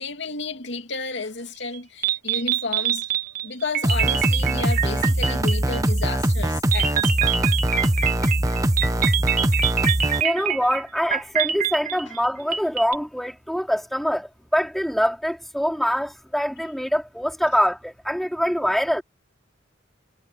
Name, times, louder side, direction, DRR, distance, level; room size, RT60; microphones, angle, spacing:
voice 1, 0.0-3.1 3.4-7.5, left 3 dB, 65° left, 2.7 m, -32 dB
sound 1, 1.7-1.8 2.0-6.0 6.7-12.9, right 9 dB, 45° right, 1.9 m, -25 dB
sound 2, 3.8-10.2, right 1 dB, 20° right, 1.5 m, -22 dB
voice 2, 10.2-19.0, equal, ahead, 3.6 m, -24 dB
head